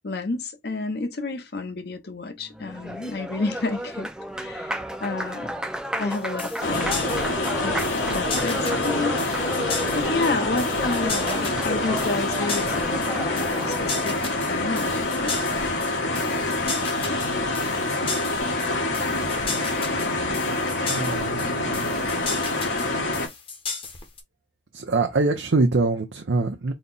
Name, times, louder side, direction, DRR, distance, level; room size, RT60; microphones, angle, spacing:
voice 1, 0.0-4.1 4.4-5.5 6.0-7.0 7.6-9.6 9.9-14.2 14.5-15.5, left 3 dB, 60° left, 0.7 m, -30 dB
Applause, 2.4-14.3, equal, 5° right, 0.3 m, -32 dB
sound 1, 6.1-24.2, left 4 dB, 30° left, 0.8 m, -34 dB
sound 2, 6.6-23.3, left 2 dB, 85° left, 1.3 m, -26 dB
voice 2, 20.9-22.0 24.7-26.7, right 3 dB, 85° right, 0.6 m, -24 dB
4.1 x 2.1 x 3.8 m
head